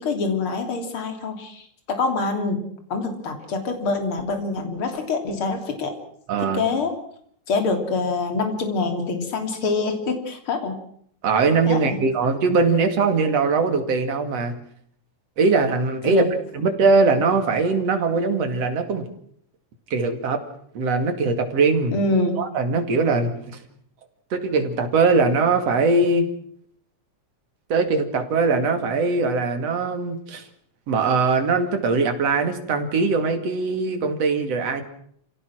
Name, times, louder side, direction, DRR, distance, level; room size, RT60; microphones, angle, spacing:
voice 1, 0.0-1.7 2.0-2.6 2.9-5.9 6.4-6.9 7.5-10.8 11.7-12.0 16.0-16.3 21.9-22.4, left 3 dB, 45° left, 5 dB, 3.8 m, -25 dB
voice 2, 6.3-6.6 11.2-14.5 15.4-16.3 16.5-19.1 19.9-20.4 20.7-21.9 22.4-23.6 24.3-26.3 27.7-30.5 30.9-34.8, right 4 dB, 55° right, 6 dB, 3.3 m, -21 dB
28.5 x 17.0 x 6.2 m, 0.65 s
omnidirectional pair, 3.4 m